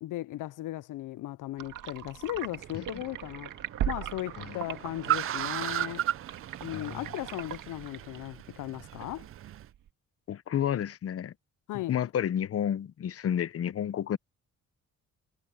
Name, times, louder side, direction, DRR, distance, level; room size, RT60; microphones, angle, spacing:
voice 1, 0.0-6.0 6.6-9.3 11.7-11.9, left 15 dB, 80° left, 0.5 m, -37 dB
sound 1, 1.6-9.9, right 11 dB, 80° right, 1.9 m, -40 dB
Car, 2.3-9.7, right 12 dB, 45° right, 0.4 m, -36 dB
voice 2, 10.3-11.3 11.9-14.2, left 9 dB, 45° left, 0.8 m, -30 dB
cardioid pair, 120°, 31 cm